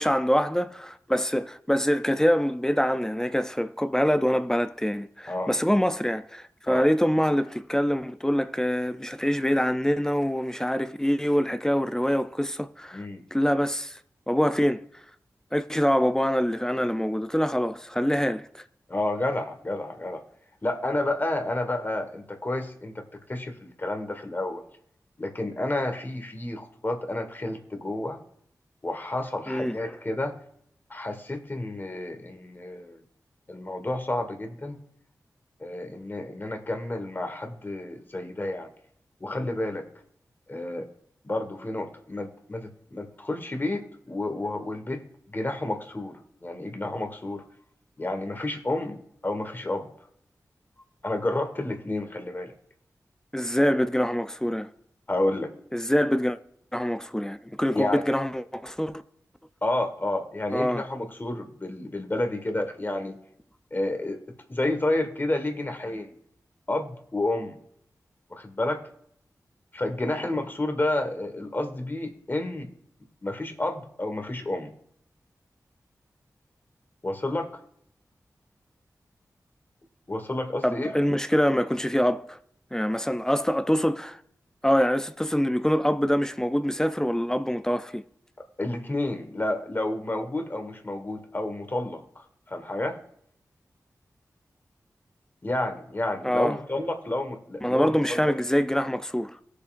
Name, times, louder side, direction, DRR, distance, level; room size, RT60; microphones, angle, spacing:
voice 1, 0.0-13.1 13.3-14.0 14.3-14.9 15.5-18.6 29.5-29.8 53.3-54.7 55.7-56.4 56.7-59.0 60.5-60.8 80.6-82.4 82.7-84.2 84.6-88.0 96.2-96.6 97.6-99.4, equal, 10° left, 0.4 m, -25 dB
voice 2, 12.9-13.2 18.9-20.2 20.6-24.6 25.2-28.2 28.8-30.4 30.9-33.0 33.5-34.8 35.6-38.7 39.2-39.8 40.5-40.9 41.2-45.0 45.3-47.4 48.0-49.9 51.0-52.5 55.1-55.5 57.7-58.0 59.6-63.2 63.7-64.2 64.5-66.1 66.7-67.6 68.3-68.8 69.7-72.7 73.2-74.7 77.0-77.5 80.1-81.0 88.6-93.0 95.4-98.3, left 1 dB, 30° left, 1.5 m, -30 dB
17.5 x 6.6 x 2.5 m
cardioid pair, 55°, 6 cm